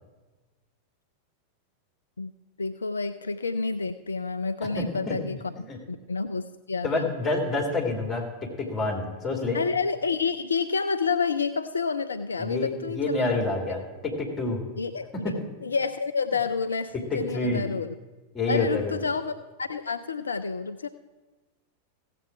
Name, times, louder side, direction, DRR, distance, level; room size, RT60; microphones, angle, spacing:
voice 1, 2.6-5.5 5.9-7.1 9.5-13.3 14.8-15.1 15.6-17.9 18.5-20.9, left 5 dB, 75° left, 10 dB, 0.3 m, -29 dB
voice 2, 4.8-5.2 5.7-5.8 6.8-9.6 12.4-14.6 15.2-15.3 17.1-17.6 18.3-19.0, left 2 dB, 20° left, 1 dB, 2.7 m, -28 dB
16.0 x 7.6 x 4.6 m, 1.2 s
figure-of-eight pair, 90°, 0 cm